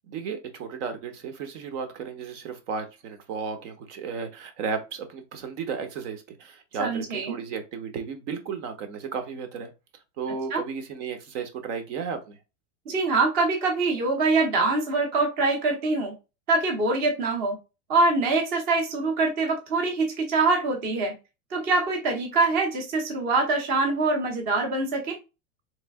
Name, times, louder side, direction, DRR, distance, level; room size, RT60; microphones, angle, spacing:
voice 1, 0.1-9.7 10.2-12.4, right 5 dB, 60° right, 8 dB, 1.0 m, -34 dB
voice 2, 6.8-7.3 10.5-10.6 12.9-16.1 16.5-17.6 17.9-21.1 21.5-25.2, right 3 dB, 25° right, 2 dB, 0.7 m, -24 dB
3.6 x 3.3 x 3.5 m, 0.27 s
supercardioid pair, 175°, 41 cm